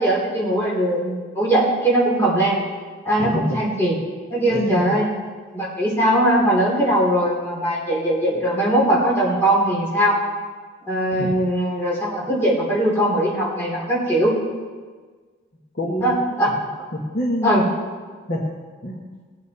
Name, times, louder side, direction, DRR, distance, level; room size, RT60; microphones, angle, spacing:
voice 1, 0.0-2.6 3.0-4.0 4.3-5.1 5.5-10.1 10.9-14.4 16.0-16.5 17.4-17.7, right 1 dB, 10° left, -6 dB, 3.3 m, -20 dB
voice 2, 3.2-3.6 4.5-5.0 11.2-11.4 15.7-16.1 16.9-17.6 18.3-19.0, equal, 50° left, -2 dB, 1.4 m, -26 dB
18.0 x 8.9 x 4.2 m, 1.5 s
head